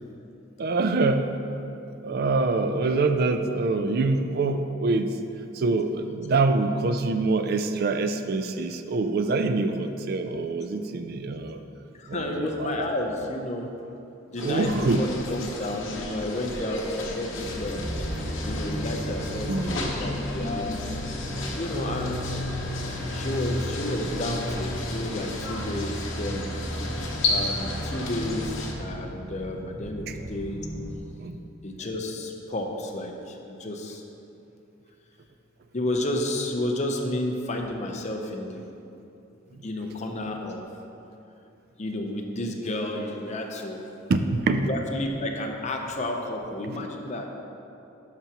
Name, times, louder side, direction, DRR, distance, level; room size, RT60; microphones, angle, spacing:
voice 1, 0.6-1.3 2.0-5.2 5.5-11.6 12.1-12.9 14.4-15.0 19.5-19.8 30.1-30.2 31.2-31.4 39.5-39.7 44.1-44.7 46.6-46.8, right 3 dB, 50° right, 8 dB, 0.3 m, -25 dB
voice 2, 11.9-13.7 14.3-17.8 18.4-20.8 21.5-22.4 23.1-26.5 27.3-30.7 31.6-34.0 35.7-38.7 39.6-40.7 41.8-43.8 44.7-47.3, left 1 dB, 35° left, 2 dB, 0.7 m, -31 dB
sound 1, 14.4-28.7, left 2 dB, 70° left, 1.0 m, -33 dB
sound 2, 15.1-23.4, equal, 15° right, 1.4 m, -44 dB
sound 3, 17.3-30.9, equal, 15° left, 1.4 m, -34 dB
11.0 x 6.0 x 2.9 m, 2.8 s
head